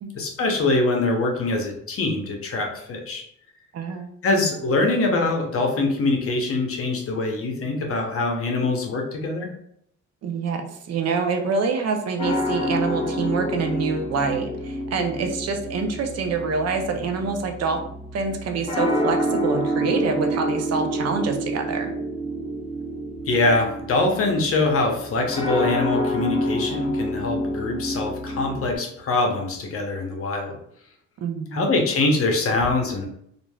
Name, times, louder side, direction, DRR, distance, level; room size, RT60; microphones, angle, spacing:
voice 1, 0.1-3.2 4.2-9.5 23.2-30.6 31.5-33.1, left 2 dB, 50° left, 2 dB, 0.7 m, -23 dB
voice 2, 3.7-4.1 10.2-17.8 18.1-21.9 31.2-31.7, right 5 dB, 55° right, 5 dB, 0.5 m, -26 dB
sound 1, 12.2-28.7, equal, 20° left, 1.1 m, -28 dB
3.1 x 2.5 x 2.2 m, 0.71 s
cardioid pair, 90°, 30 cm